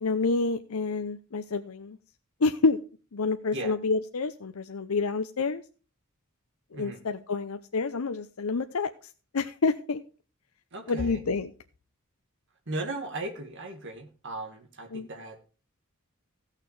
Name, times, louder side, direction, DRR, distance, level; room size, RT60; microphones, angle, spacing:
voice 1, 0.0-2.0 2.4-2.8 3.1-5.6 6.7-8.9 9.3-10.0 10.9-11.5 14.9-15.1, left 4 dB, 90° left, 8 dB, 0.7 m, -28 dB
voice 2, 6.7-7.0 10.7-11.2 12.7-15.4, right 2 dB, 60° right, 4 dB, 2.2 m, -37 dB
16.0 x 6.6 x 4.8 m, 0.35 s
head